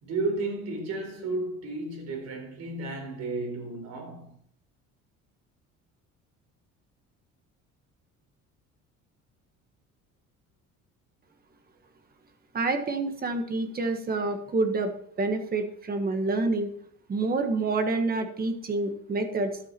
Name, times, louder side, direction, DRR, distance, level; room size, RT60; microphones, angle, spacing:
voice 1, 0.0-4.4, right 2 dB, 60° right, 4.3 m, -33 dB
voice 2, 12.5-14.9 15.2-16.7 17.1-19.5, right 3 dB, 30° right, 1.5 m, -27 dB
12.0 x 8.2 x 4.5 m
cardioid pair, 135°, 30 cm